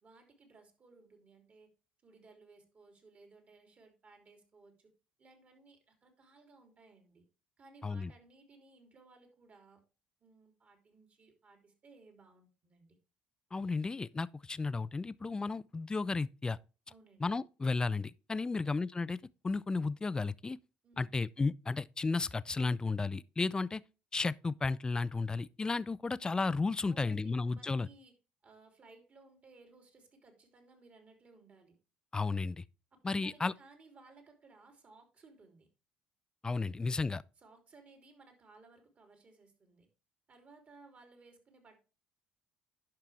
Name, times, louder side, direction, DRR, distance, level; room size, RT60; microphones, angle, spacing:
voice 1, 0.0-1.7 2.0-4.9 5.2-7.2 7.6-9.8 10.2-13.0 16.9-17.2 18.4-18.8 20.8-21.1 26.8-28.1 28.4-31.8 32.9-35.7 37.4-39.9 40.3-41.8, right 3 dB, 40° right, 3.3 m, -60 dB
voice 2, 13.5-16.6 17.2-19.2 19.4-20.6 21.0-23.8 24.1-27.9 32.1-32.6 33.0-33.5 36.4-37.2, left 3 dB, 20° left, 0.4 m, -33 dB
10.5 x 5.9 x 3.4 m
hypercardioid pair, 65°, 4 cm